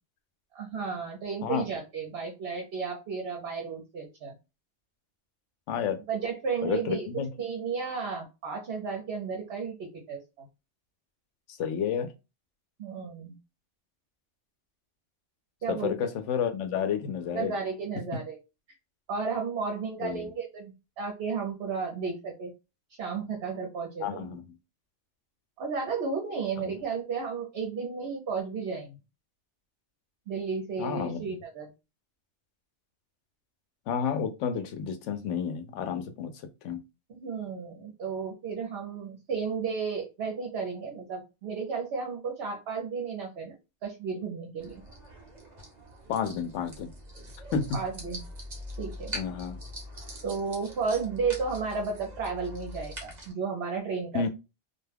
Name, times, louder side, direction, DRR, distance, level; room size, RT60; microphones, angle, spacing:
voice 1, 0.5-4.4 6.1-7.1 7.4-10.5 12.8-13.4 15.6-16.0 17.3-18.4 19.1-22.5 23.0-24.4 25.6-29.0 30.3-31.7 37.1-43.6 43.8-44.8 47.7-48.2 48.8-49.1 50.2-54.2, right 5 dB, 65° right, 0.9 m, -33 dB
voice 2, 5.7-6.0 6.6-7.3 11.5-12.1 15.7-17.5 20.0-20.3 24.0-24.4 26.6-26.7 30.8-31.2 33.9-36.3 36.6-36.8 46.1-46.9 47.5-47.7 49.1-49.6 54.1-54.3, left 7 dB, 90° left, 0.9 m, -30 dB
sound 1, 44.6-53.3, equal, 40° right, 0.9 m, -43 dB
2.4 x 2.2 x 3.3 m
omnidirectional pair, 1.2 m